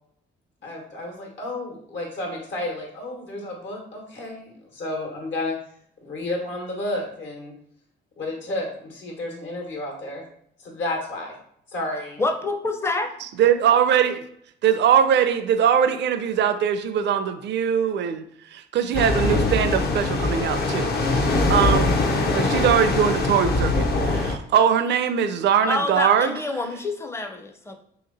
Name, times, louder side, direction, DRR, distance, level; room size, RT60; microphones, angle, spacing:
voice 1, 0.6-5.6 6.0-7.5 8.2-10.2 10.6-11.4 11.7-12.2, left 2 dB, 70° left, 0 dB, 1.4 m, -31 dB
voice 2, 12.2-13.1 25.7-27.8, left 2 dB, 15° left, 5 dB, 0.5 m, -27 dB
voice 3, 13.2-14.2 14.6-21.9 22.3-26.3, right 8 dB, 65° right, 9 dB, 0.4 m, -21 dB
sound 1, 18.9-24.3, left 2 dB, 50° left, 0.7 m, -22 dB
2.9 x 2.9 x 3.9 m, 0.67 s
cardioid pair, 90°, 20 cm